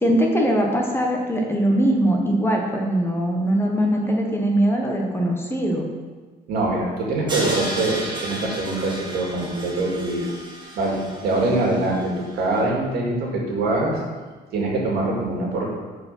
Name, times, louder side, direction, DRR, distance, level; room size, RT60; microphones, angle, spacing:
voice 1, 0.0-5.9, right 1 dB, 15° left, 0 dB, 1.1 m, -21 dB
voice 2, 6.5-10.3 10.8-14.0 14.5-15.7, right 2 dB, 70° right, -2 dB, 2.1 m, -24 dB
Crash cymbal, 7.3-12.3, right 1 dB, 25° right, 1.5 m, -34 dB
6.5 x 4.7 x 5.4 m, 1.4 s
cardioid pair, 110°, 17 cm